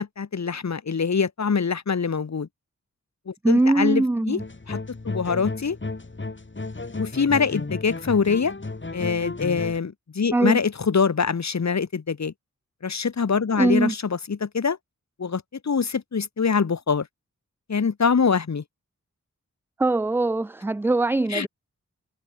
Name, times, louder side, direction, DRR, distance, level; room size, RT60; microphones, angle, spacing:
voice 1, 0.0-2.5 3.3-4.4 4.7-5.8 6.9-8.5 8.9-12.3 12.8-14.8 15.2-17.1 17.7-18.6 21.3-21.5, left 5 dB, 60° left, 1.7 m, -24 dB
voice 2, 3.4-4.4 10.3-10.6 13.6-13.9 19.8-21.5, right 2 dB, 10° right, 0.3 m, -21 dB
sound 1, 4.4-9.8, left 3 dB, 40° left, 5.1 m, -33 dB
wide cardioid pair, 60°, 31 cm